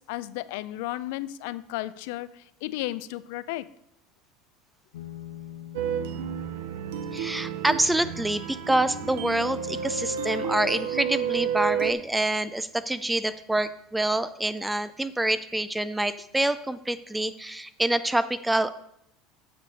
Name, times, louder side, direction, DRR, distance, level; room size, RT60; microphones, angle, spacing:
voice 1, 0.0-3.7, left 16 dB, 75° left, 16 dB, 0.4 m, -34 dB
sound 1, 4.9-14.0, left 11 dB, 90° left, 0.9 m, -48 dB
sound 2, 5.7-11.9, right 7 dB, 80° right, 0.6 m, -31 dB
voice 2, 7.1-18.7, right 1 dB, 10° right, 14 dB, 0.4 m, -26 dB
9.3 x 6.7 x 4.1 m, 0.74 s
supercardioid pair, 100°, 0 cm